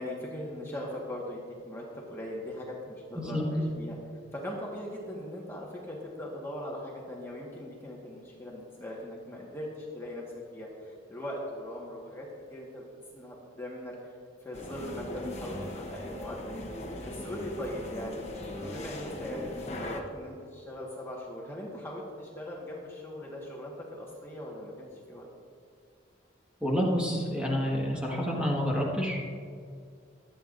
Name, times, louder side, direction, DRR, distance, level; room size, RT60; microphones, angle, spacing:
voice 1, 0.0-4.0 4.3-10.2 10.5-12.8 13.1-13.9 14.4-16.6 17.0-18.3 18.7-25.3, left 1 dB, 10° left, -4 dB, 1.5 m, -40 dB
sound 1, 14.5-20.0, left 1 dB, 35° left, 1.2 m, -39 dB
voice 2, 26.6-29.2, equal, 5° right, -4 dB, 1.6 m, -28 dB
24.5 x 9.1 x 2.6 m, 2.2 s
head